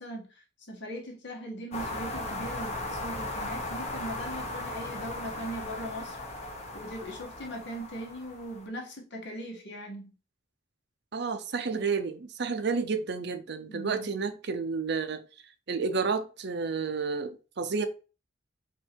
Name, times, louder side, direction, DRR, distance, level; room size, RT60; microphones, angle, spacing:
voice 1, 0.0-6.2 6.7-10.1 13.7-14.1, right 1 dB, 65° left, 0 dB, 1.5 m, -40 dB
sound 1, 1.7-8.7, left 2 dB, 35° left, 1.1 m, -37 dB
voice 2, 11.1-15.2 15.7-17.8, right 5 dB, 60° right, 8 dB, 0.6 m, -31 dB
4.5 x 2.7 x 4.4 m, 0.33 s
head